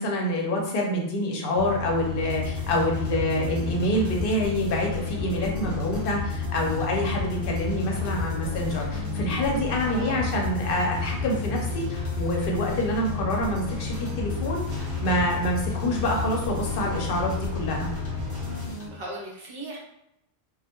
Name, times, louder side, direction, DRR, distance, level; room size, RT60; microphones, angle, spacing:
voice 1, 0.0-14.6 15.0-17.9, equal, 60° left, -1 dB, 0.7 m, -27 dB
sound 1, 1.5-18.7, left 7 dB, 35° right, 0.6 m, -33 dB
sound 2, 2.3-18.9, left 1 dB, 20° left, 0.4 m, -35 dB
voice 2, 9.8-10.2 18.9-19.8, right 1 dB, 65° right, -3 dB, 0.9 m, -37 dB
2.2 x 2.1 x 2.8 m, 0.81 s
omnidirectional pair, 1.1 m